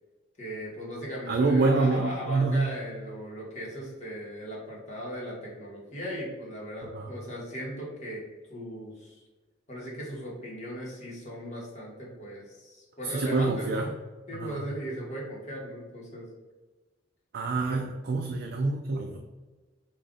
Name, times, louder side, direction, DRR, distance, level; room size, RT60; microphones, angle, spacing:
voice 1, 0.4-8.2 8.5-9.2 9.7-13.9 14.3-16.3 17.7-17.8, equal, 35° left, -4 dB, 1.1 m, -37 dB
voice 2, 1.3-2.7 6.9-7.1 13.0-13.9 14.4-14.6 17.3-19.2, right 3 dB, 55° right, 2 dB, 0.3 m, -26 dB
3.7 x 2.5 x 3.7 m, 1.3 s
head